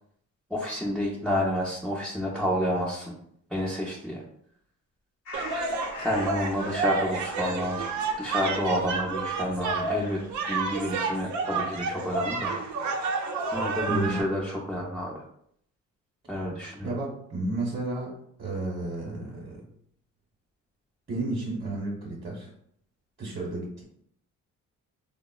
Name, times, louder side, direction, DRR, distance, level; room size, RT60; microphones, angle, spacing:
voice 1, 0.5-3.2 3.5-4.2 6.0-7.8 8.2-10.2 10.5-12.6 13.5-15.2 16.3-16.9, equal, ahead, -5 dB, 0.5 m, -29 dB
sound 1, 5.3-6.4 8.1-8.8 9.6-10.4, left 2 dB, 60° left, 0.8 m, -42 dB
sound 2, 5.3-14.2, right 4 dB, 70° right, 0.5 m, -30 dB
voice 2, 13.9-14.2 16.8-19.6 21.1-22.5 23.2-23.8, right 2 dB, 35° right, -5 dB, 0.9 m, -32 dB
3.5 x 2.0 x 2.3 m, 0.68 s
cardioid pair, 90°, 30 cm